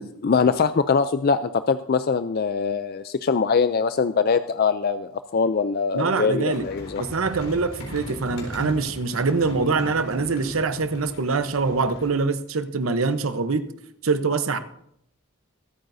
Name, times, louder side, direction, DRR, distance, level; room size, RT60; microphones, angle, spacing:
voice 1, 0.0-7.0 8.6-8.7, left 5 dB, 45° left, 11 dB, 0.4 m, -23 dB
voice 2, 5.9-6.6 7.0-13.6 14.0-14.6, right 4 dB, 80° right, 10 dB, 0.9 m, -24 dB
sound 1, 6.5-12.1, equal, 80° left, 4.0 m, -39 dB
23.5 x 8.9 x 2.7 m, 0.73 s
head